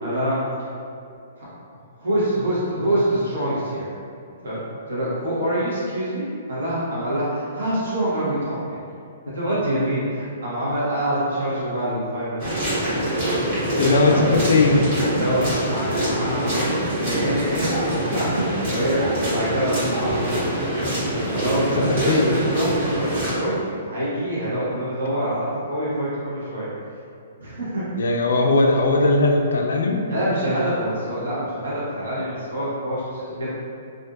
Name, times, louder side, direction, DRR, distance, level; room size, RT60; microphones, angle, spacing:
voice 1, 0.0-0.7 1.4-1.5 2.0-3.9 4.4-4.6 4.9-8.6 9.3-12.7 13.5-13.7 14.1-14.4 14.7-14.8 15.1-26.7 27.4-27.9 30.1-33.5, right 1 dB, 85° right, -8 dB, 1.1 m, -26 dB
sound 1, 12.4-23.3, right 1 dB, 55° right, 1.3 m, -24 dB
voice 2, 13.8-14.8 17.9-18.0 21.7-22.4 27.9-30.0, left 3 dB, 85° left, 2 dB, 0.3 m, -19 dB
2.6 x 2.4 x 2.4 m, 2.4 s
hypercardioid pair, 155°, 0 cm